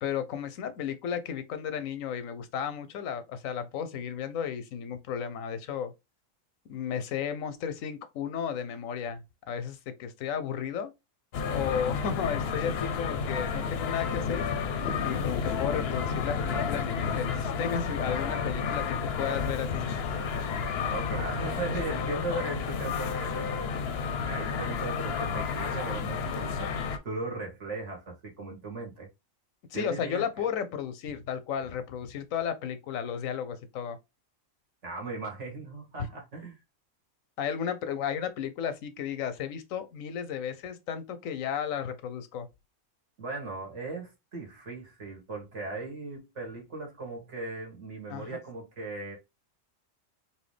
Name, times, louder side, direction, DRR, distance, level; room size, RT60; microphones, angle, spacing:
voice 1, 0.0-5.9 6.7-10.9 11.5-14.5 15.0-19.9 29.7-34.0 37.4-42.5 48.1-48.4, left 8 dB, 90° left, 1.1 m, -34 dB
sound 1, 11.3-27.0, left 6 dB, 60° left, 0.8 m, -31 dB
voice 2, 20.9-23.7 24.2-29.1 29.7-30.2 34.8-36.6 43.2-49.2, right 3 dB, 65° right, 1.8 m, -38 dB
4.2 x 2.7 x 3.2 m
omnidirectional pair, 1.4 m